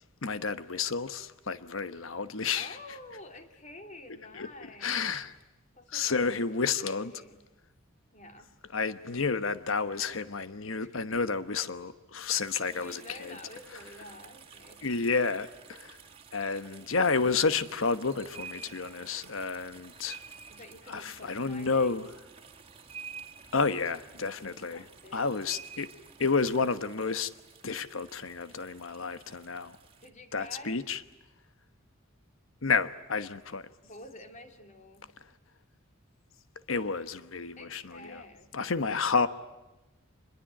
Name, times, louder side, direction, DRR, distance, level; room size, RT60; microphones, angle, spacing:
voice 1, 0.2-2.8 4.3-4.5 4.8-5.3 5.9-7.1 8.7-13.4 14.8-16.0 16.3-20.2 20.9-22.1 23.5-24.8 25.1-25.9 26.2-27.3 27.6-29.8 30.3-31.0 32.6-33.7 36.7-38.2 38.5-39.3, left 4 dB, 70° left, 1.2 m, -30 dB
voice 2, 2.6-5.1 5.8-6.2 6.7-7.5 8.1-8.6 10.7-11.4 12.7-14.9 20.5-22.0 24.4-25.3 30.0-30.8 33.8-35.1 37.6-38.9, left 1 dB, 35° left, 2.8 m, -49 dB
sound 1, 12.3-30.1, right 6 dB, 30° right, 2.3 m, -51 dB
26.5 x 22.0 x 9.0 m
head